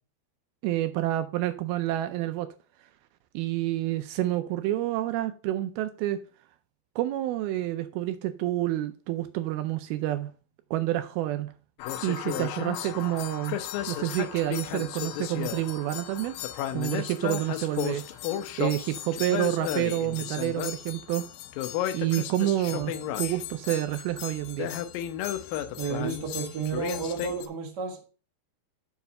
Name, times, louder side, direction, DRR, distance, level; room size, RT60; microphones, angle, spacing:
voice 1, 0.6-2.5 3.3-6.2 7.0-10.3 10.7-11.5 12.0-13.6 13.9-16.4 16.7-18.0 18.6-21.3 21.9-24.7, right 14 dB, 80° right, 2.3 m, -28 dB
sound 1, 11.8-27.5, left 11 dB, 85° left, 2.0 m, -34 dB
voice 2, 25.7-28.0, right 6 dB, 50° right, 1.2 m, -32 dB
7.1 x 5.6 x 5.3 m
omnidirectional pair, 4.6 m